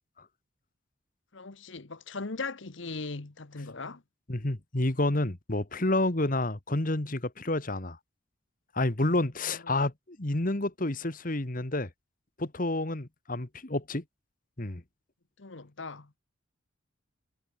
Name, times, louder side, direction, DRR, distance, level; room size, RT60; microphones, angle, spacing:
voice 1, 1.3-4.0 6.2-6.3 9.6-9.8 15.4-16.1, left 3 dB, 65° left, 1.2 m, -39 dB
voice 2, 4.3-8.0 8.7-11.9 12.4-14.0 14.6-14.8, left 2 dB, 40° left, 1.6 m, -29 dB
head